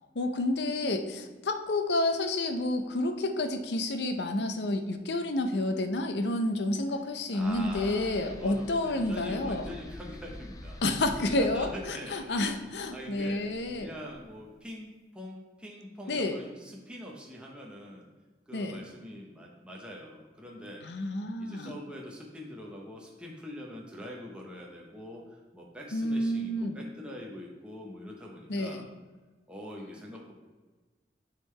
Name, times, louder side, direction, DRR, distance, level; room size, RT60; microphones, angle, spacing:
voice 1, 0.1-9.7 10.8-13.9 16.1-16.4 18.5-18.8 20.8-21.8 25.9-26.8 28.5-28.8, left 2 dB, 75° left, 7 dB, 0.6 m, -30 dB
sound 1, 7.3-14.5, left 1 dB, 20° left, 0.3 m, -47 dB
voice 2, 7.3-11.0 11.4-12.2 12.9-13.4 13.7-18.1 18.5-20.8 21.4-28.9 29.5-30.3, equal, 5° right, -2 dB, 0.8 m, -44 dB
9.9 x 3.7 x 3.2 m, 1.3 s
head